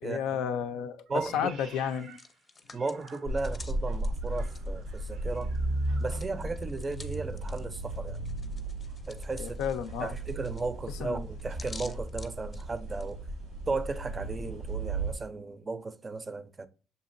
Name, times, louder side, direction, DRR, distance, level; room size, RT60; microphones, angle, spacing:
voice 1, 0.0-2.2 9.4-10.1 11.0-11.2, left 8 dB, 90° left, 0.3 m, -32 dB
voice 2, 1.1-1.5 2.7-5.5 6.0-8.3 9.1-9.6 10.0-13.2 13.7-16.7, right 3 dB, 30° right, 0.5 m, -35 dB
Meow, 1.1-3.6 4.2-6.2, right 6 dB, 70° right, 0.6 m, -53 dB
Hands, 1.9-5.6 5.9-13.1, left 3 dB, 30° left, 0.6 m, -51 dB
sound 1, 3.2-15.1, right 2 dB, 90° right, 1.6 m, -35 dB
6.7 x 2.8 x 2.5 m
supercardioid pair, 80°, 0 cm